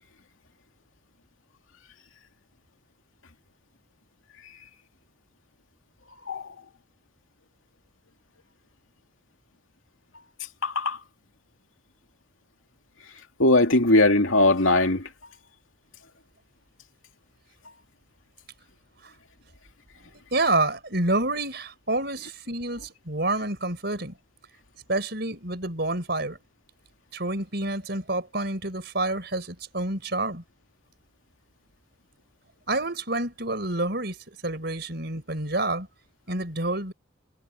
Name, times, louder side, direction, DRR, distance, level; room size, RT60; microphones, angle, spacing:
voice 1, 10.6-11.0 13.4-15.1, left 2 dB, 80° left, 2.6 m, -20 dB
voice 2, 20.3-24.1 24.9-26.4 27.1-30.4 32.7-35.9 36.3-36.9, right 2 dB, 55° right, 5.3 m, -28 dB
head